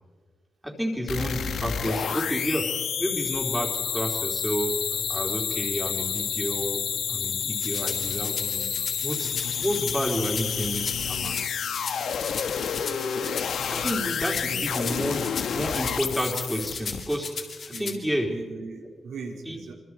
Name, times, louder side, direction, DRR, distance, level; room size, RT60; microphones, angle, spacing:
voice 1, 0.6-4.8 5.1-6.8 7.1-8.7 9.0-9.3 9.6-11.4 13.7-17.4 17.8-18.3 19.5-19.6, equal, 5° right, 0 dB, 3.5 m, -30 dB
sound 1, 1.1-17.0, left 7 dB, 70° left, 1.2 m, -29 dB
sound 2, 7.6-17.9, left 5 dB, 55° left, 3.4 m, -37 dB
voice 2, 14.5-14.8 17.7-19.7, right 4 dB, 85° right, 0 dB, 4.0 m, -40 dB
26.0 x 25.5 x 4.7 m, 1.5 s
wide cardioid pair, 165°, 0 cm